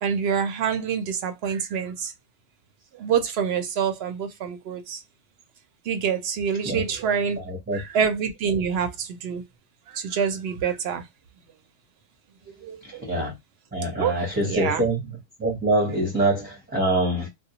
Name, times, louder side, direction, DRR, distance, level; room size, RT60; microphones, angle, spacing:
voice 1, 0.0-2.1 2.9-5.0 5.9-7.4 7.7-9.5 9.9-11.0 12.6-13.1 14.0-14.2 14.4-14.8, right 7 dB, 65° right, 0.7 m, -26 dB
voice 2, 7.5-7.8 12.8-13.3 13.7-17.3, right 1 dB, 10° right, 0.6 m, -25 dB
2.2 x 2.0 x 2.8 m
omnidirectional pair, 1.4 m